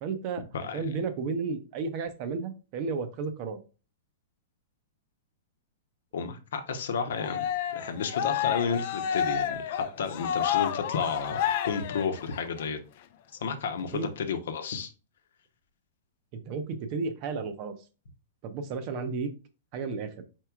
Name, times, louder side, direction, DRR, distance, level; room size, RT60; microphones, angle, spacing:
voice 1, 0.0-0.4 0.7-3.6 13.9-14.1 16.3-17.7 18.4-19.3 19.7-20.1, right 4 dB, 40° right, 10 dB, 0.6 m, -33 dB
voice 2, 0.5-0.8 6.1-7.5 7.7-12.8 13.4-14.9, left 6 dB, 80° left, 7 dB, 0.8 m, -32 dB
Cheering, 7.2-12.6, left 9 dB, 50° left, 0.4 m, -30 dB
4.5 x 4.5 x 2.4 m, 0.33 s
hypercardioid pair, 155°, 0 cm